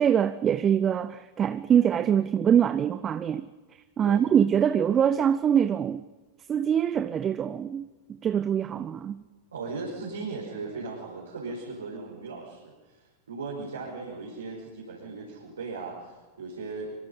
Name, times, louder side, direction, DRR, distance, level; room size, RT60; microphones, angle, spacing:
voice 1, 0.0-3.5 4.0-6.1 6.5-9.2, right 8 dB, 25° right, 0.7 m, -24 dB
voice 2, 9.5-16.9, right 3 dB, 70° right, 5.3 m, -37 dB
25.5 x 24.5 x 5.6 m
figure-of-eight pair, 90°, 0 cm